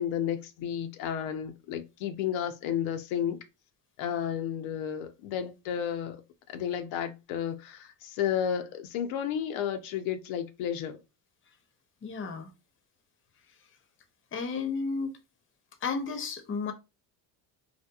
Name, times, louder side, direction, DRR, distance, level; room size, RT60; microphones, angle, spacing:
voice 1, 0.0-3.4 4.0-6.2 6.5-11.0, left 9 dB, 75° left, 0.6 m, -32 dB
voice 2, 12.0-12.5 14.3-15.2 15.8-16.7, left 4 dB, 25° left, 0.6 m, -32 dB
2.8 x 2.1 x 2.3 m
supercardioid pair, 85°, 47 cm